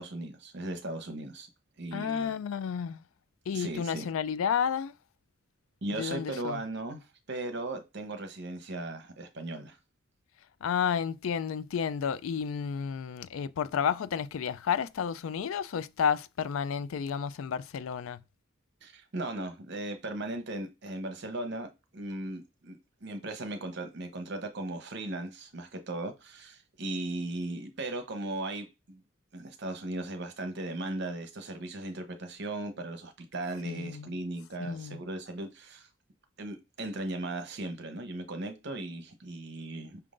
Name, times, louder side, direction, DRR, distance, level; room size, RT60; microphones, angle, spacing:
voice 1, 0.0-1.5 1.8-2.3 3.5-4.1 5.8-9.8 18.8-29.0 29.3-35.9 36.4-40.0, right 2 dB, 55° right, 0.8 m, -37 dB
voice 2, 1.9-3.0 3.5-4.9 5.9-6.6 10.6-18.2 33.7-34.1 34.6-35.0, left 7 dB, 75° left, 0.3 m, -31 dB
5.6 x 3.7 x 2.5 m
head